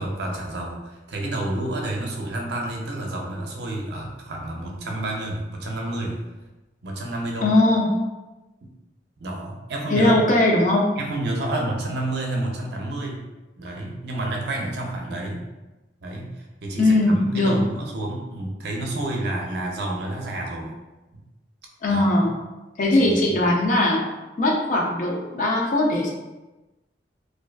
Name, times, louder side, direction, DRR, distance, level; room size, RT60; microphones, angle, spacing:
voice 1, 0.0-6.2 6.8-7.5 9.2-10.2 11.0-13.2 13.6-15.4 16.0-20.7 21.1-21.2 21.9-22.2 23.0-23.2, right 1 dB, 65° right, 0 dB, 0.5 m, -29 dB
voice 2, 7.4-8.0 9.9-11.0 16.8-17.6 21.8-22.3 22.8-24.0 24.4-26.1, left 1 dB, 45° left, -1 dB, 0.4 m, -20 dB
2.4 x 2.3 x 2.2 m, 1.1 s
head